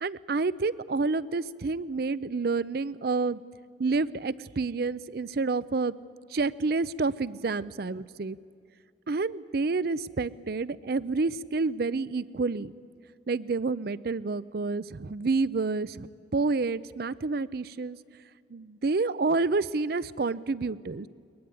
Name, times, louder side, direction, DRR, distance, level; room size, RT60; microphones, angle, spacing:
voice 1, 0.0-3.4 3.8-5.9 6.3-8.4 9.1-12.7 13.3-16.1 16.3-18.0 18.5-21.1, right 3 dB, 55° right, 18 dB, 0.5 m, -29 dB
21.5 x 20.5 x 9.6 m, 2.3 s
head